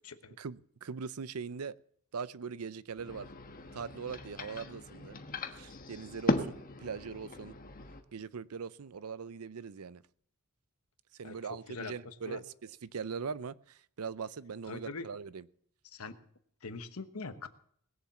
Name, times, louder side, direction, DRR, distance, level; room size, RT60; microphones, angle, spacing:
voice 1, 0.4-1.7 2.1-3.3 3.7-5.2 5.6-6.5 6.8-7.6 8.1-10.0 11.1-15.4, right 6 dB, 85° right, 0.6 m, -41 dB
sound 1, 2.9-8.0, left 2 dB, 40° left, 1.3 m, -37 dB
voice 2, 11.7-12.4 14.7-15.1 15.9-16.2 16.6-17.5, left 4 dB, 80° left, 1.2 m, -42 dB
20.0 x 7.3 x 7.2 m
head